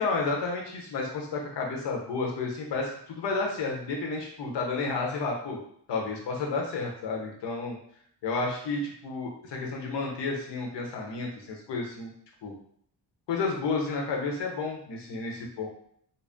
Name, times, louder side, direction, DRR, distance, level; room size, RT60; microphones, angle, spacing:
voice 1, 0.0-5.6 5.9-7.8 8.2-12.1 12.4-12.5 13.3-15.7, left 3 dB, 90° left, 0 dB, 0.9 m, -31 dB
4.0 x 2.1 x 3.5 m, 0.65 s
cardioid pair, 95°, 41 cm